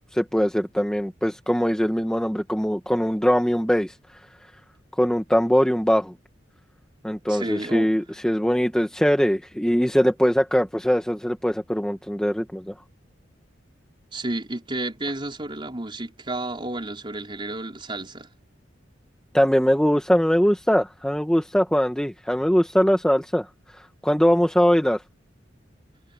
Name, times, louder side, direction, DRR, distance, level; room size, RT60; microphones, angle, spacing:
voice 1, 0.0-3.9 5.0-6.1 7.0-12.7 19.3-23.5 23.7-25.0, equal, 5° left, 1.3 m, -21 dB
voice 2, 7.3-7.9 14.1-18.3, right 2 dB, 25° right, 4.4 m, -31 dB
head